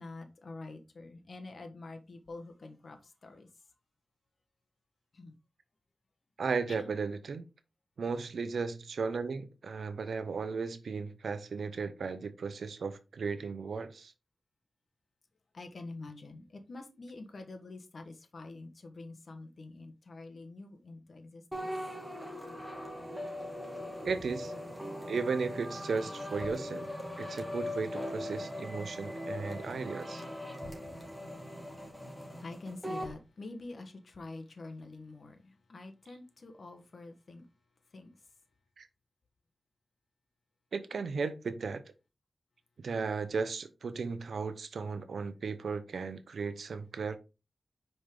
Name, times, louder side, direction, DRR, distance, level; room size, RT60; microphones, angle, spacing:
voice 1, 0.0-3.5 5.1-5.3 6.8-6.9 15.5-21.7 30.8-31.0 31.8-31.9 32.2-37.4 37.9-38.1, left 2 dB, 65° left, 1.2 m, -47 dB
voice 2, 6.4-7.5 8.0-14.1 24.0-24.5 25.1-26.9 27.2-30.2 38.8-38.9 40.7-41.8 42.8-47.2, right 5 dB, 90° right, 0.7 m, -35 dB
sound 1, 21.5-33.1, left 1 dB, 5° left, 2.3 m, -40 dB
5.3 x 4.9 x 3.7 m
cardioid pair, 55°, 0 cm